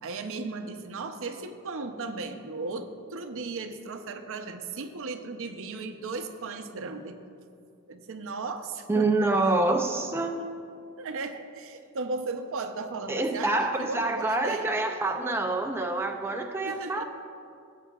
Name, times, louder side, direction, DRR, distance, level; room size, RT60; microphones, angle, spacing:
voice 1, 0.0-7.2 7.9-9.1 9.4-9.8 11.0-14.7 16.6-17.0, right 3 dB, 60° right, 7 dB, 0.6 m, -36 dB
voice 2, 8.9-10.4 13.1-17.0, right 2 dB, 10° right, 3 dB, 0.4 m, -26 dB
17.5 x 8.2 x 2.4 m, 2.5 s
head